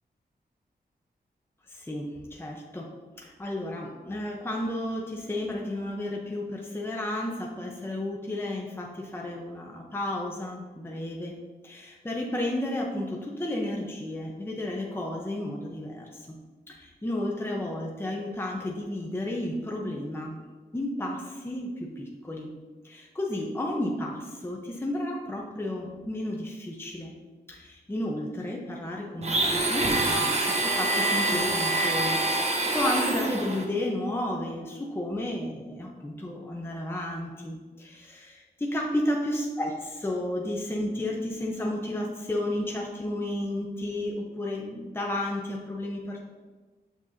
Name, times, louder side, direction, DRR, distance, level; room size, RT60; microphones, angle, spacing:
voice 1, 1.7-2.9 3.2-11.4 11.6-16.3 16.7-20.4 20.7-22.5 22.8-27.2 27.5-46.2, left 1 dB, 15° left, -2 dB, 0.8 m, -32 dB
Domestic sounds home sounds, 29.2-33.7, right 2 dB, 40° right, 0.9 m, -26 dB
6.7 x 6.1 x 2.7 m, 1.3 s
wide cardioid pair, 110°, 17 cm